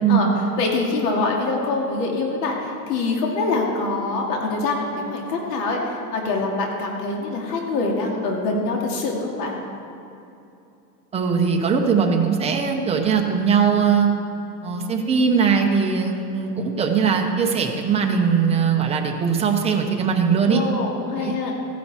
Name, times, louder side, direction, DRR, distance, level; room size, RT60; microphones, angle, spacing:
voice 1, 0.0-0.3 11.1-14.1 14.6-20.6 21.2-21.3, right 6 dB, 10° right, 1 dB, 0.9 m, -20 dB
voice 2, 0.6-9.6 20.5-21.5, left 3 dB, 70° left, 0 dB, 2.7 m, -24 dB
15.0 x 10.5 x 4.4 m, 2.7 s
supercardioid pair, 150°, 50 cm